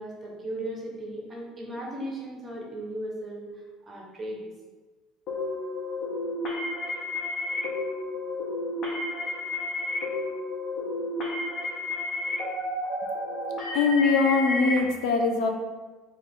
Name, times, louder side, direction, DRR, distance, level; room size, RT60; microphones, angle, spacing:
voice 1, 0.0-3.5 3.8-4.4, right 1 dB, 20° right, -2 dB, 0.8 m, -36 dB
sound 1, 5.3-14.8, left 2 dB, 40° left, 0.9 m, -31 dB
voice 2, 13.7-15.5, left 4 dB, 60° left, 3 dB, 0.5 m, -22 dB
4.5 x 2.5 x 3.6 m, 1.3 s
cardioid pair, 165°, 0 cm